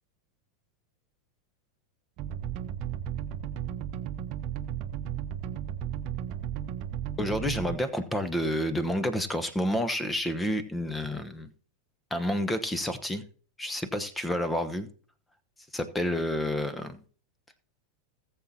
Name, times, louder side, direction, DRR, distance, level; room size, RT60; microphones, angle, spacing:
sound 1, 2.2-7.8, right 10 dB, 40° right, 1.0 m, -34 dB
voice 1, 7.2-11.5 12.1-13.2 13.6-14.9 15.7-17.0, left 1 dB, 10° left, 1.1 m, -29 dB
19.0 x 7.4 x 2.8 m
figure-of-eight pair, 90°, 0 cm